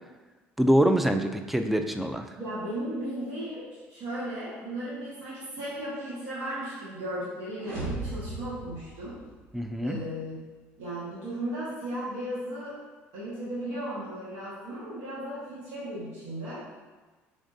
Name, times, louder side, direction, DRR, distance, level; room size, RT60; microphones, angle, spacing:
voice 1, 0.6-2.3 9.5-10.0, equal, 5° right, 7 dB, 0.3 m, -24 dB
voice 2, 2.4-9.2 9.8-10.4 10.8-12.7 13.1-16.6, right 1 dB, 80° right, -10 dB, 1.3 m, -35 dB
sound 1, 7.6-9.7, right 2 dB, 50° right, 1.4 m, -37 dB
5.0 x 3.5 x 2.6 m, 1.3 s
supercardioid pair, 85°, 5 cm